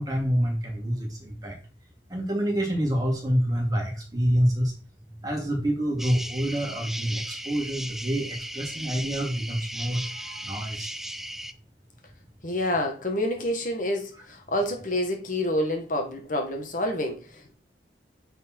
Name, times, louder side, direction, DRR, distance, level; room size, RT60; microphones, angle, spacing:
voice 1, 0.0-1.5 2.1-4.7 5.2-10.9, equal, 20° right, -1 dB, 2.8 m, -27 dB
sound 1, 6.0-11.5, right 1 dB, ahead, 0.4 m, -37 dB
voice 2, 12.4-17.5, left 1 dB, 45° left, 3 dB, 1.5 m, -28 dB
9.2 x 4.6 x 4.5 m, 0.36 s
head